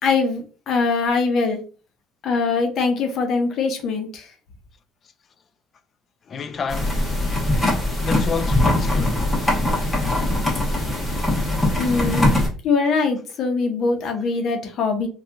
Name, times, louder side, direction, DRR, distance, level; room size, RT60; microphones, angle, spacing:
voice 1, 0.0-1.6 2.2-4.3 11.8-12.4 12.6-15.1, left 4 dB, 50° left, 0.8 m, -22 dB
voice 2, 6.3-7.0 8.0-9.3, left 5 dB, 35° left, 0.3 m, -29 dB
sound 1, 6.7-12.5, left 1 dB, 15° left, 1.1 m, -21 dB
2.8 x 2.3 x 3.4 m
cardioid pair, 125°, 0 cm